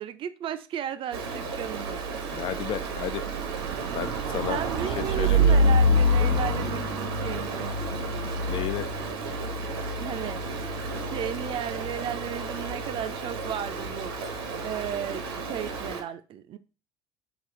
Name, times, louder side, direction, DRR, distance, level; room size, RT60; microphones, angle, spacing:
voice 1, 0.0-2.2 3.7-4.0 4.5-7.7 10.0-10.6 10.9-14.1 14.6-16.6, right 10 dB, 45° right, 0.5 m, -35 dB
Stream, 1.1-16.0, right 1 dB, 80° right, 0.9 m, -28 dB
voice 2, 2.3-3.2 3.9-4.6 4.9-5.6 8.5-8.9, left 11 dB, 45° left, 0.4 m, -32 dB
6.0 x 2.4 x 3.7 m
hypercardioid pair, 65°, 12 cm